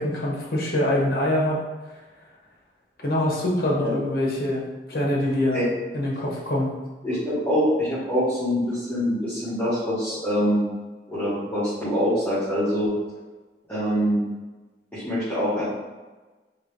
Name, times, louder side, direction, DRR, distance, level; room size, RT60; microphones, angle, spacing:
voice 1, 0.0-1.6 3.0-4.6 4.9-5.6 5.9-6.7, left 1 dB, 55° left, -3 dB, 0.9 m, -24 dB
voice 2, 7.0-10.6 11.1-12.9 13.7-14.2 14.9-15.6, equal, 10° left, -15 dB, 1.3 m, -24 dB
3.9 x 2.9 x 3.2 m, 1.2 s
head